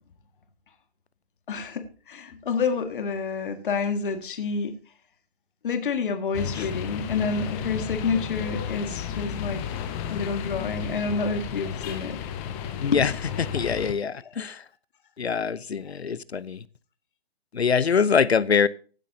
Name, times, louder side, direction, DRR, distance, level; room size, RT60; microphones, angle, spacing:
voice 1, 1.5-4.8 5.6-9.6 10.1-12.2 12.9-13.1 13.5-13.6 14.2-14.3, left 5 dB, 55° left, 1.9 m, -28 dB
sound 1, 6.3-13.9, left 9 dB, 10° left, 0.4 m, -33 dB
voice 2, 12.8-13.1 13.4-14.6 15.2-16.6 17.5-18.7, left 6 dB, 85° left, 0.8 m, -24 dB
16.0 x 9.9 x 2.8 m
figure-of-eight pair, 140°, 31 cm